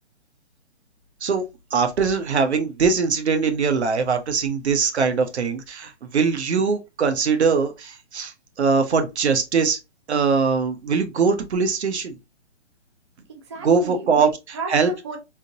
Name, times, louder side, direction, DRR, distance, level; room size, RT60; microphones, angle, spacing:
voice 1, 1.7-9.8 10.1-12.2 13.6-14.3 14.7-14.9, right 5 dB, 65° right, 1.0 m, -21 dB
voice 2, 13.3-15.2, right 5 dB, 25° right, 0.4 m, -34 dB
3.7 x 2.7 x 2.8 m
hypercardioid pair, 150°, 35 cm